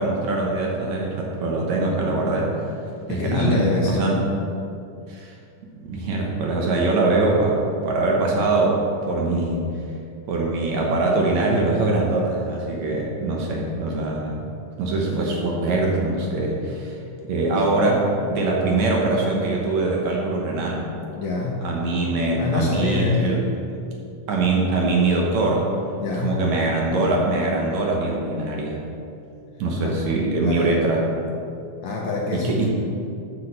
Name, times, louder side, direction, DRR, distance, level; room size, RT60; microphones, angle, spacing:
voice 1, 0.0-2.5 3.1-4.2 5.1-5.3 5.8-8.8 9.1-9.6 10.3-14.4 14.8-16.9 17.2-20.9 21.6-23.4 24.3-25.7 26.2-28.8 29.6-31.0 32.3-32.7, right 2 dB, 65° right, -2 dB, 2.2 m, -22 dB
voice 2, 3.1-4.1 21.1-21.7 22.4-23.4 26.0-26.4 29.8-29.9 30.4-30.7 31.8-32.7, left 3 dB, 70° left, -2 dB, 1.7 m, -25 dB
8.2 x 6.5 x 6.5 m, 2.6 s
omnidirectional pair, 3.9 m